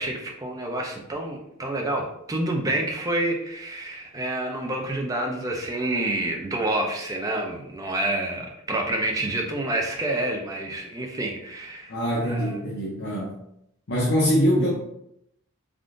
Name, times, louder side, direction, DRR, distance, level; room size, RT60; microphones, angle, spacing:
voice 1, 0.0-11.9 12.2-12.7 14.6-14.7, right 1 dB, 15° right, 1 dB, 0.4 m, -28 dB
voice 2, 11.9-13.4 13.9-14.7, equal, 55° left, -5 dB, 0.6 m, -23 dB
3.5 x 2.5 x 2.5 m, 0.78 s
head